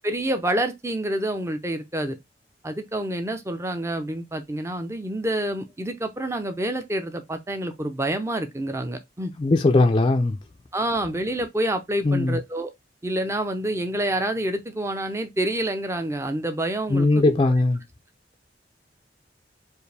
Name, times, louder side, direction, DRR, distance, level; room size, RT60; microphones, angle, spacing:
voice 1, 0.0-2.2 2.6-9.3 10.7-12.7 13.0-17.3, right 1 dB, 15° right, 0.6 m, -27 dB
voice 2, 9.4-10.4 12.0-12.4 16.9-17.8, left 2 dB, 30° left, 0.4 m, -19 dB
4.5 x 2.6 x 3.3 m
head